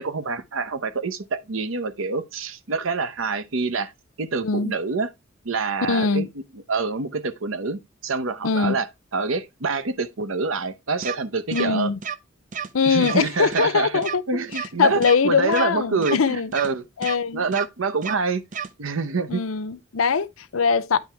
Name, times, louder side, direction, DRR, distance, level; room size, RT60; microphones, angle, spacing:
voice 1, 0.0-3.9 4.2-5.1 5.4-6.3 6.5-8.9 9.1-11.9 12.8-16.8 17.3-18.4 18.8-19.4, right 4 dB, 75° right, 0.8 m, -26 dB
voice 2, 4.4-4.7 5.9-6.3 8.4-8.8 11.5-12.0 12.7-14.2 14.8-16.5 17.0-17.4 19.3-21.0, left 5 dB, 85° left, 0.6 m, -22 dB
sound 1, 11.0-11.1 11.5-11.6 12.0-12.1 12.5-12.7 13.0-13.1 13.5-13.6 14.0-14.1 14.5-14.7 15.0-15.1 15.5-15.6 16.0-16.1 16.5-16.7 17.0-17.1 17.5-17.6 18.0-18.1 18.5-18.7, right 7 dB, 40° right, 0.6 m, -30 dB
9.5 x 3.4 x 4.5 m
head